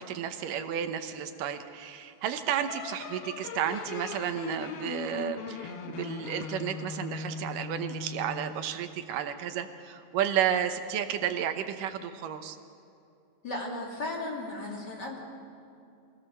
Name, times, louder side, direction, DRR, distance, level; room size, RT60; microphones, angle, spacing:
voice 1, 0.0-12.6, right 9 dB, 75° right, 8 dB, 2.5 m, -32 dB
sound 1, 2.7-8.7, left 6 dB, 75° left, 1.4 m, -39 dB
voice 2, 13.4-15.2, left 2 dB, 30° left, -2 dB, 3.2 m, -35 dB
23.5 x 18.0 x 6.6 m, 2.6 s
omnidirectional pair, 4.0 m